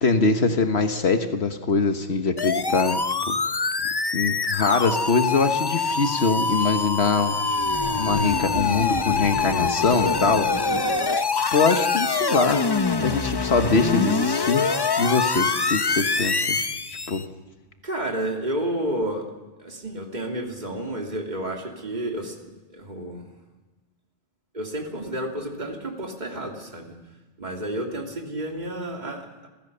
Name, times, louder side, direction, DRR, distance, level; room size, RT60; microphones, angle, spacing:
voice 1, 0.0-3.3 4.1-7.5 8.0-10.5 11.5-12.6 13.0-14.7 15.0-16.6 17.1-17.2, left 4 dB, 75° left, 7 dB, 1.6 m, -23 dB
sound 1, 2.4-17.2, left 4 dB, 25° left, 0.7 m, -24 dB
voice 2, 17.8-19.2 19.6-23.3 24.5-27.0 27.4-29.5, right 1 dB, 45° right, 1 dB, 3.0 m, -31 dB
27.5 x 16.5 x 6.8 m, 1.2 s
omnidirectional pair, 1.1 m